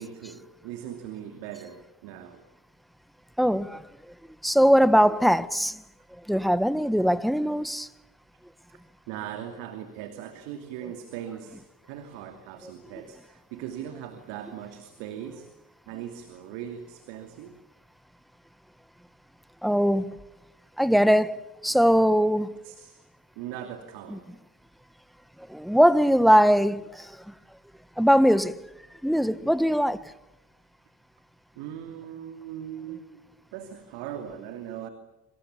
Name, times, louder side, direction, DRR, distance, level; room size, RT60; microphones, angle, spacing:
voice 1, 0.0-2.4 9.1-11.6 11.9-15.5 15.9-17.6 22.6-23.0 23.3-24.3 31.5-33.2 33.5-34.9, right 10 dB, 65° right, 2.8 m, -39 dB
voice 2, 3.4-3.8 4.4-5.8 6.3-7.9 19.6-20.1 20.8-21.4 21.6-22.5 24.1-24.2 25.5-27.3 28.0-28.6 29.0-30.0, equal, ahead, 1.2 m, -21 dB
27.5 x 26.0 x 7.2 m
hypercardioid pair, 60°, 46 cm